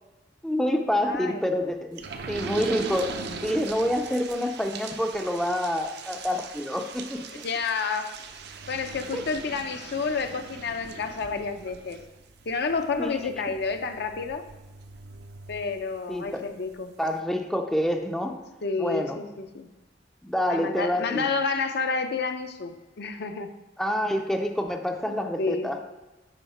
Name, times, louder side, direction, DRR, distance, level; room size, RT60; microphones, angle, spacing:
voice 1, 0.4-2.0 2.3-7.2 9.1-9.2 13.0-13.1 16.1-16.5 17.0-18.4 18.8-19.2 20.2-21.3 23.8-26.0, equal, 5° left, 4 dB, 0.4 m, -27 dB
voice 2, 1.0-1.4 7.4-8.2 8.7-12.0 12.5-14.4 15.5-16.9 18.6-19.7 20.5-23.5 25.1-25.7, left 4 dB, 60° left, 7 dB, 0.5 m, -30 dB
sound 1, 2.0-16.3 16.7-16.8 17.1-17.2, right 5 dB, 60° right, 0.5 m, -41 dB
9.0 x 3.9 x 4.2 m, 1.1 s
head